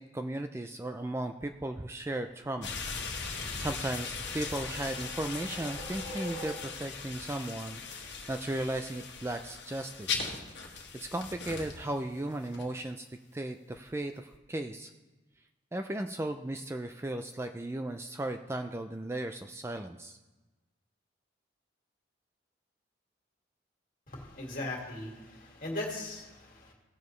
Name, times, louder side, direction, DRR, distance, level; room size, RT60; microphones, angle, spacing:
voice 1, 0.0-2.7 3.2-10.3 10.9-13.1 13.3-14.9 15.7-20.2, right 1 dB, 15° right, 6 dB, 0.3 m, -36 dB
sound 1, 2.6-12.0 12.5-12.6, left 5 dB, 65° left, 1.5 m, -39 dB
sound 2, 4.1-7.1, equal, 65° right, 2.6 m, -45 dB
voice 2, 24.1-26.7, left 2 dB, 45° left, -1 dB, 2.2 m, -39 dB
17.0 x 6.9 x 3.2 m, 1.1 s
head